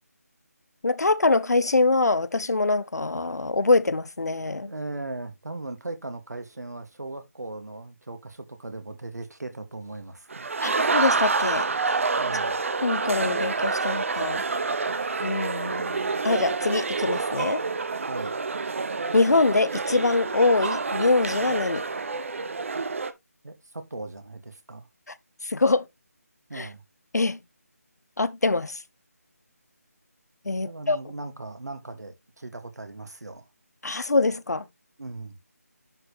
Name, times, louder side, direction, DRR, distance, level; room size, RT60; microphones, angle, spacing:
voice 1, 0.8-4.7 10.6-12.0 12.8-14.4 15.2-17.6 19.1-21.8 25.4-25.9 26.5-26.7 27.1-27.4 28.2-28.8 30.4-31.0 33.8-34.6, left 3 dB, 85° left, 0.7 m, -24 dB
voice 2, 4.6-10.9 12.2-12.6 18.1-18.3 23.4-24.9 26.5-26.8 30.6-33.4 35.0-35.4, right 2 dB, 85° right, 2.4 m, -38 dB
sound 1, 10.3-23.1, right 4 dB, 55° right, 0.9 m, -28 dB
11.0 x 4.7 x 3.4 m
figure-of-eight pair, 165°, 9 cm